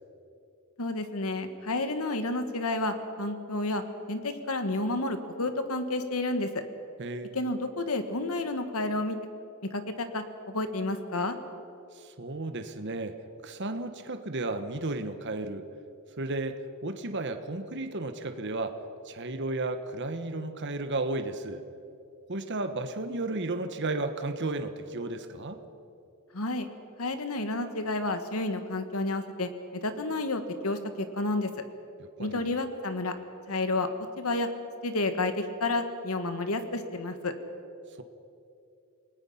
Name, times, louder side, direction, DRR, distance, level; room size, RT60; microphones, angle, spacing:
voice 1, 0.8-3.8 4.1-6.6 7.3-9.2 9.7-11.4 26.3-26.7 27.0-31.5 32.2-33.1 33.5-33.9 34.2-34.5 34.8-37.3, left 2 dB, 75° left, 8 dB, 1.7 m, -30 dB
voice 2, 7.0-7.4 11.9-15.7 16.2-21.6 22.3-25.6 32.0-32.5, right 2 dB, 55° right, 8 dB, 1.2 m, -34 dB
28.5 x 19.5 x 5.7 m, 2.6 s
head